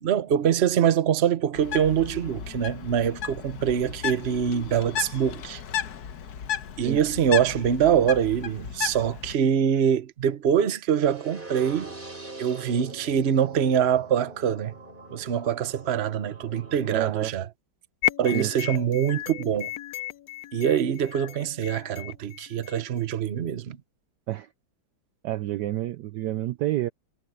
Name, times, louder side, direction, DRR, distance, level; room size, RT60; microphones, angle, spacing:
voice 1, 0.0-5.6 6.8-11.9 12.4-14.7 15.1-17.5 18.2-19.7 20.5-23.8, right 8 dB, 45° right, 0.9 m, -24 dB
Bird, 1.5-9.3, left 9 dB, 55° left, 1.4 m, -34 dB
sound 1, 11.0-17.0, right 2 dB, 25° right, 5.3 m, -43 dB
voice 2, 16.9-17.3 18.3-18.5 24.3-24.5 25.2-26.9, right 14 dB, 70° right, 1.0 m, -28 dB
sound 2, 18.0-23.1, left 16 dB, 85° left, 0.8 m, -34 dB
omnidirectional pair, 2.2 m